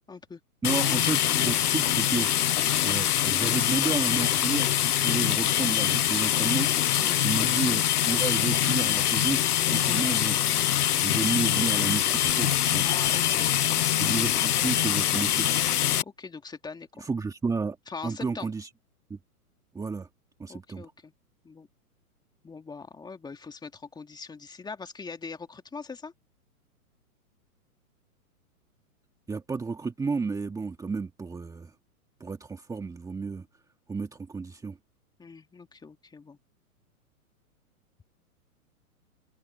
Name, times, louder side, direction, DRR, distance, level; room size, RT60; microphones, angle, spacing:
voice 1, 0.1-0.4 6.9-7.2 9.8-10.1 12.8-14.6 16.0-17.1 17.9-18.5 20.5-21.1 21.4-21.7 22.4-26.1 35.2-36.4, left 4 dB, 10° left, 2.2 m, -42 dB
sound 1, 0.6-16.0, left 11 dB, 85° left, 0.8 m, -24 dB
voice 2, 0.6-2.3 2.8-6.7 7.2-9.4 9.7-10.4 11.0-12.9 13.9-15.5 17.0-17.8 18.0-18.7 19.1-19.2 19.7-20.1 20.4-20.9 29.3-31.7 32.2-33.5 33.9-34.8, right 4 dB, 10° right, 1.6 m, -32 dB
open air
hypercardioid pair, 130°, 44 cm